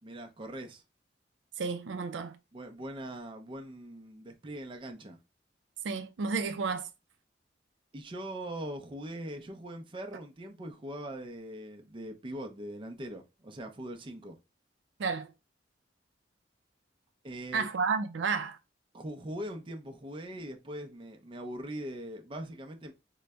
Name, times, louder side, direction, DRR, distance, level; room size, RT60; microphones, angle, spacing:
voice 1, 0.0-0.8 2.5-5.2 7.9-14.4 17.2-17.7 18.9-22.9, right 1 dB, 30° right, 0.5 m, -41 dB
voice 2, 1.6-2.4 5.8-6.9 15.0-15.3 17.5-18.6, right 5 dB, 80° right, 0.4 m, -31 dB
3.8 x 2.1 x 3.3 m
head